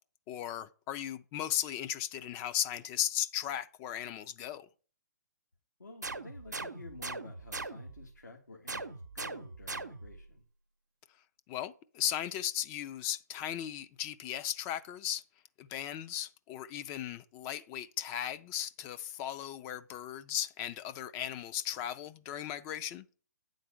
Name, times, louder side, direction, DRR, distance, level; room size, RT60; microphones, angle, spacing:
voice 1, 0.3-4.7 11.5-15.2 15.6-23.1, left 11 dB, 25° left, 0.4 m, -36 dB
voice 2, 5.8-10.4, left 2 dB, 85° left, 1.4 m, -51 dB
sound 1, 6.0-8.1 8.7-10.2, right 3 dB, 90° right, 0.7 m, -41 dB
9.3 x 3.9 x 6.1 m
figure-of-eight pair, 125°, 9 cm